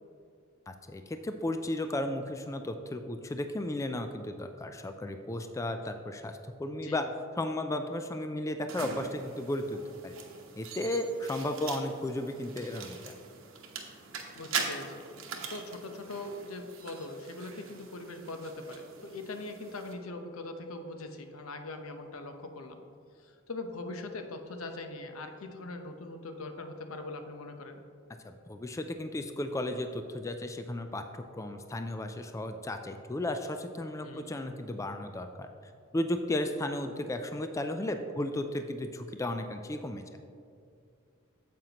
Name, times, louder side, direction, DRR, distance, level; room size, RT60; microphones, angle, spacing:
voice 1, 0.7-7.0 7.4-10.2 10.6-13.2 28.2-40.0, left 1 dB, 15° left, 7 dB, 0.3 m, -34 dB
sound 1, 8.7-19.9, right 5 dB, 65° right, 1.0 m, -42 dB
voice 2, 14.3-15.1 15.5-22.8 23.2-27.8 34.0-34.3, left 2 dB, 85° left, 6 dB, 0.8 m, -41 dB
9.0 x 7.6 x 2.9 m, 2.4 s
head